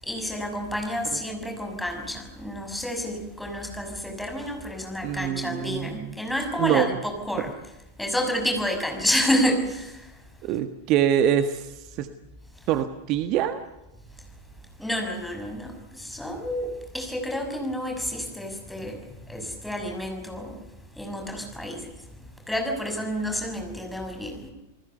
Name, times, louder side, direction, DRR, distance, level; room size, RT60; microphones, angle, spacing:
voice 1, 0.0-7.5 8.0-10.2 14.2-14.3 14.8-20.6 20.9-21.9 22.5-24.5, equal, 5° left, 3 dB, 6.5 m, -29 dB
voice 2, 5.0-6.1 6.6-6.9 10.4-12.1 12.7-13.6, right 10 dB, 40° right, 9 dB, 1.5 m, -24 dB
29.5 x 20.0 x 6.9 m, 0.97 s
figure-of-eight pair, 90°, 0 cm